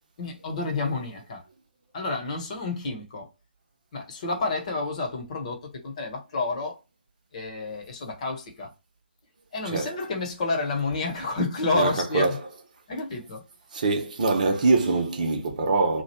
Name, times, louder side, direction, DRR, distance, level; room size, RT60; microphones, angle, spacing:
voice 1, 0.2-1.4 1.9-3.3 3.9-6.8 7.3-8.7 9.5-12.4 12.9-13.4, left 3 dB, 40° left, 1.0 m, -29 dB
voice 2, 11.7-12.4 13.7-16.0, right 3 dB, 45° right, 0.9 m, -24 dB
3.0 x 2.3 x 4.3 m
figure-of-eight pair, 150°, 6 cm